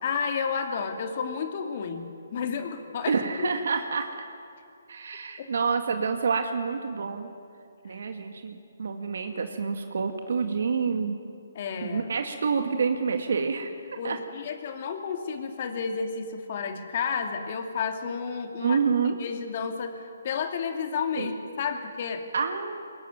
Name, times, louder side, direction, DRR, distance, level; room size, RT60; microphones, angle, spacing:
voice 1, 0.0-3.5 5.4-5.5 7.9-8.0 11.5-12.1 14.0-18.8 19.2-22.3, left 6 dB, 40° left, 5 dB, 2.6 m, -31 dB
voice 2, 3.1-4.1 4.9-7.3 7.8-11.2 11.8-13.8 14.0-14.2 18.6-19.2 21.2-21.3 22.3-22.8, right 5 dB, 65° right, 6 dB, 1.9 m, -28 dB
22.0 x 21.5 x 9.3 m, 2.5 s
hypercardioid pair, 160°, 0 cm